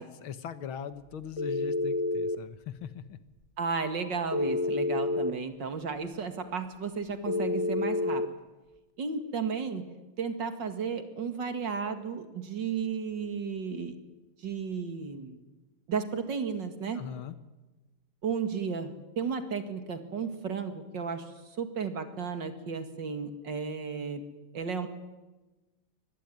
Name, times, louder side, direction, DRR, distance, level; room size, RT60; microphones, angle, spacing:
voice 1, 0.2-3.2 16.9-17.3, left 8 dB, 70° left, 13 dB, 2.0 m, -40 dB
Telephone, 1.4-2.4 4.3-5.3 7.3-8.3, left 2 dB, 35° left, 0.5 m, -29 dB
voice 2, 3.6-8.2 9.0-14.0 14.4-15.4 15.9-17.0 18.2-24.2 24.5-24.9, right 5 dB, 55° right, 9 dB, 2.7 m, -34 dB
24.0 x 20.5 x 9.3 m, 1.1 s
omnidirectional pair, 2.4 m